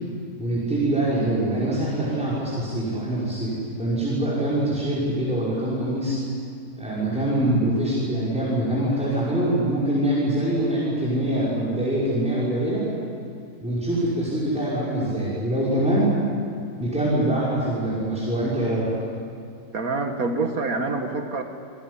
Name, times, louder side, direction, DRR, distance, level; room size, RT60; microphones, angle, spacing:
voice 1, 0.4-6.2 6.8-12.9 13.6-16.1 16.7-18.9, right 1 dB, 5° right, -9 dB, 5.9 m, -24 dB
voice 2, 19.7-21.4, right 3 dB, 70° right, 5 dB, 2.2 m, -26 dB
27.0 x 19.5 x 10.0 m, 2.4 s
omnidirectional pair, 1.6 m